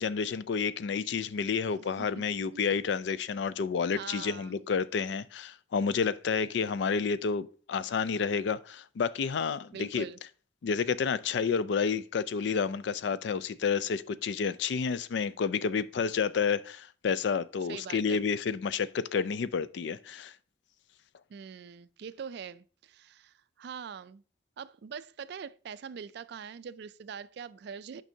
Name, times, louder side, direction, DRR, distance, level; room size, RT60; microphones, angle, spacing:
voice 1, 0.0-10.1 10.6-20.3, left 6 dB, 65° left, 0.3 m, -30 dB
voice 2, 3.9-4.6 9.7-10.2 17.7-18.2 21.3-24.2 24.6-28.0, right 7 dB, 60° right, 0.3 m, -43 dB
8.9 x 5.3 x 2.7 m
head